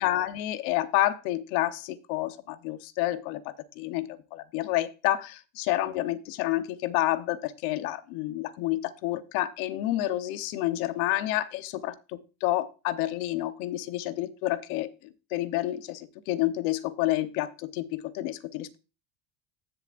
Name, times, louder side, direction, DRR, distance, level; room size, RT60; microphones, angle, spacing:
voice 1, 0.0-14.9 15.3-18.8, left 15 dB, 85° left, 11 dB, 1.0 m, -29 dB
15.0 x 7.2 x 2.5 m, 0.32 s
cardioid pair, 145°, 42 cm